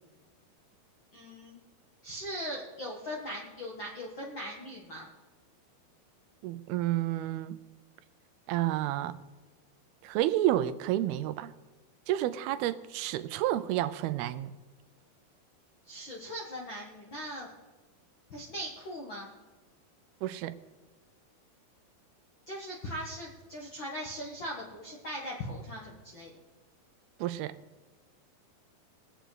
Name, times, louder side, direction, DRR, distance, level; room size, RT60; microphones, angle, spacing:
voice 1, 1.1-1.6 2.0-5.1 15.9-17.5 18.3-19.3 22.5-26.3, equal, 60° left, -2 dB, 1.2 m, -40 dB
voice 2, 6.4-7.6 8.5-9.2 10.0-11.5 12.1-14.5 20.2-20.6 27.2-27.6, right 13 dB, 85° right, 13 dB, 2.5 m, -30 dB
22.5 x 8.3 x 3.9 m, 1.3 s
omnidirectional pair, 4.4 m